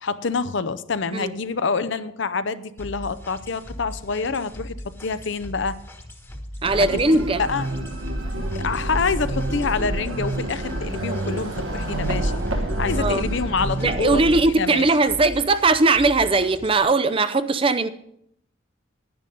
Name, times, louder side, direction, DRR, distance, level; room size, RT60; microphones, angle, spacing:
voice 1, 0.0-4.7 5.0-5.8 6.8-6.9 7.1-7.7 8.3-14.9, left 4 dB, 60° left, 14 dB, 0.6 m, -27 dB
sound 1, 2.8-16.8, equal, 10° left, 1.3 m, -39 dB
voice 2, 6.6-7.4 13.0-13.2 13.8-17.9, right 3 dB, 25° right, 12 dB, 0.5 m, -19 dB
sound 2, 6.6-14.4, right 1 dB, 75° right, 1.5 m, -28 dB
10.5 x 10.5 x 5.3 m, 0.71 s
head